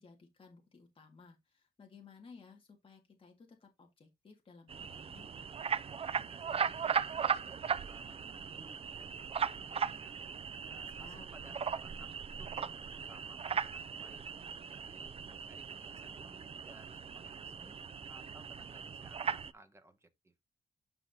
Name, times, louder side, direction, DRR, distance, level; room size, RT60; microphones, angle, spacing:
voice 1, 0.0-5.3 10.9-11.3, left 5 dB, 35° left, 1.9 m, -57 dB
sound 1, 4.7-19.5, right 7 dB, 35° right, 0.4 m, -38 dB
voice 2, 5.8-10.2 10.7-12.1 12.4-14.3 14.7-17.8 18.1-20.3, right 2 dB, 15° right, 1.1 m, -59 dB
9.8 x 5.5 x 2.7 m
wide cardioid pair, 170°, 16 cm